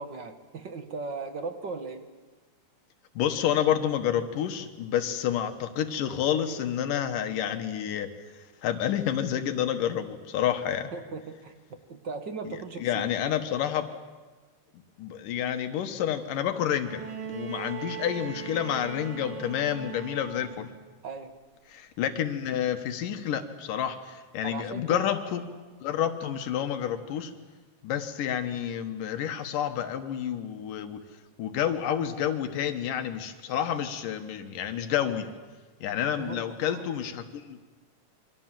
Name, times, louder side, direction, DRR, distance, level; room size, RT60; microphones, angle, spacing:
voice 1, 0.0-2.0 10.9-13.1 21.0-21.4 24.4-25.0 36.2-36.9, right 4 dB, 45° right, 7 dB, 1.8 m, -38 dB
voice 2, 3.2-8.1 8.6-10.9 12.5-12.6 12.8-13.9 15.0-17.0 17.3-20.7 21.7-25.4 25.8-27.3 27.8-31.0 31.4-35.3 35.8-37.6, left 10 dB, 85° left, 7 dB, 2.9 m, -29 dB
Bowed string instrument, 16.9-20.9 22.1-22.2, right 7 dB, 85° right, 3.3 m, -39 dB
28.5 x 24.0 x 7.5 m, 1.3 s
omnidirectional pair, 3.7 m